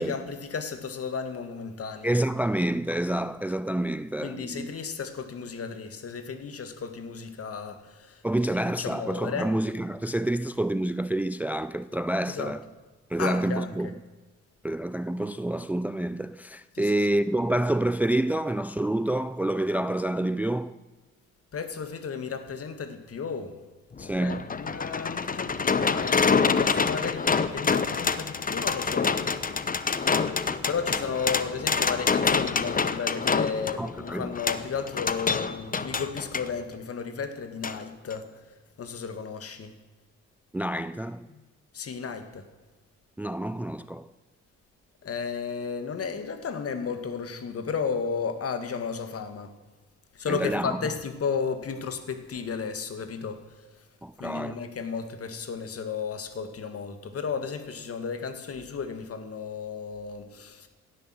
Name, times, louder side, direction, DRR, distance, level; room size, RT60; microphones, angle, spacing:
voice 1, 0.0-2.1 4.2-8.2 8.8-9.5 12.3-12.5 13.2-13.7 16.7-17.0 21.5-23.6 24.2-29.2 30.7-38.3 38.8-39.8 41.3-41.4 41.7-42.5 45.0-49.5 50.1-53.4 54.2-60.7, left 5 dB, 50° left, 2.1 m, -33 dB
voice 2, 2.0-4.7 8.2-12.6 13.1-13.9 14.6-20.8 24.0-24.5 33.8-34.4 40.5-41.3 43.2-44.1 50.3-50.8 54.0-54.6, right 1 dB, 5° right, 0.4 m, -28 dB
sound 1, 23.9-36.5 37.6-37.8 38.1-38.2, left 5 dB, 30° left, 1.0 m, -26 dB
17.0 x 10.5 x 7.8 m
cardioid pair, 90°, 30 cm